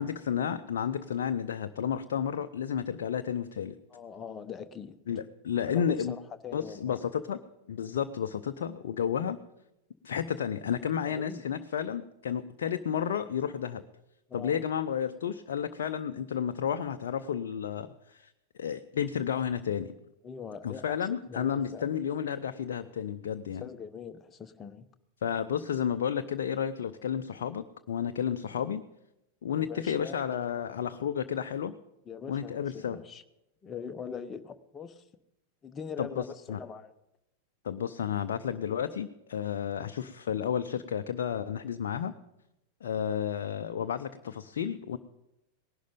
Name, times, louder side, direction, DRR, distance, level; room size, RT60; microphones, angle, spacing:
voice 1, 0.0-3.8 5.1-6.2 6.5-7.4 7.7-9.4 10.0-13.8 14.3-18.3 18.6-19.9 20.6-23.6 25.2-28.8 29.4-31.7 32.3-33.0 36.0-36.2 36.5-36.6 37.6-42.1 42.8-45.0, left 8 dB, 60° left, 7 dB, 0.6 m, -32 dB
voice 2, 3.9-5.2 5.7-7.0 11.0-11.4 14.3-14.6 20.2-21.9 23.6-24.9 29.5-30.2 32.1-33.2 33.6-35.0 35.6-36.9, left 6 dB, 20° left, 9 dB, 0.9 m, -42 dB
19.0 x 11.5 x 5.2 m, 0.89 s
figure-of-eight pair, 90°, 0 cm